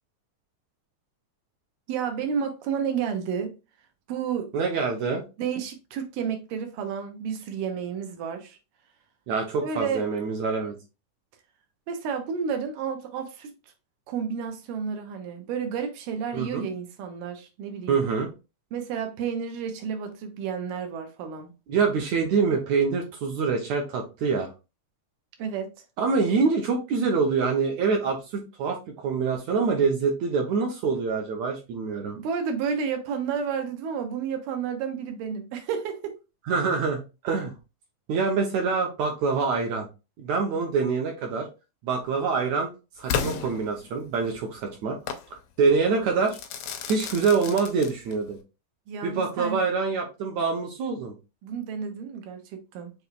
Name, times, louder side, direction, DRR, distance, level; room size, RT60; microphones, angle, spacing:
voice 1, 1.9-3.6 4.1-4.5 5.4-8.6 9.6-10.0 11.9-13.5 14.1-18.0 18.7-21.5 25.4-25.7 32.2-36.1 48.9-49.7 51.4-52.9, right 7 dB, 90° right, 2.5 m, -31 dB
voice 2, 4.5-5.2 9.3-10.8 16.3-16.7 17.9-18.3 21.7-24.5 26.0-32.2 36.5-37.5 38.1-39.9 40.2-41.5 41.8-42.7 43.0-45.0 45.3-46.4 46.9-48.4 49.0-51.2, right 5 dB, 70° right, 1.8 m, -25 dB
Crackle / Fireworks, 43.1-44.2 45.1-45.3 46.3-48.3, left 7 dB, 80° left, 1.4 m, -32 dB
6.9 x 3.1 x 2.3 m
omnidirectional pair, 3.8 m